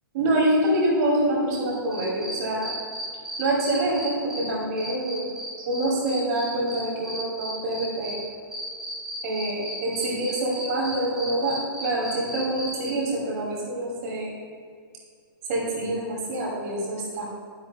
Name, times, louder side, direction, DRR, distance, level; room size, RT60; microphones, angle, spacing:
voice 1, 0.1-2.7 3.4-5.3 5.6-8.2 9.2-14.3 15.5-17.2, right 1 dB, 40° right, -4 dB, 2.5 m, -26 dB
sound 1, 1.7-4.4 4.8-8.2 8.5-12.9, right 1 dB, 5° right, 2.4 m, -35 dB
11.0 x 10.5 x 2.3 m, 2.1 s
figure-of-eight pair, 115°, 12 cm